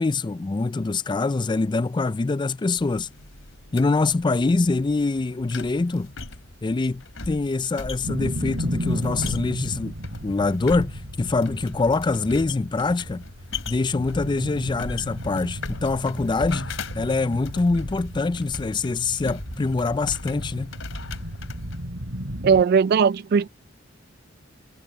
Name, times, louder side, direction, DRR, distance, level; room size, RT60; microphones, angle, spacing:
voice 1, 0.0-3.1 3.7-6.1 6.6-9.9 10.2-13.2 13.7-20.7, left 3 dB, 25° left, 0.4 m, -24 dB
sound 1, 2.8-21.8, left 3 dB, 75° left, 3.0 m, -39 dB
sound 2, 8.0-22.6, equal, 75° right, 5.6 m, -34 dB
voice 2, 22.4-23.5, right 6 dB, 55° right, 0.3 m, -18 dB
head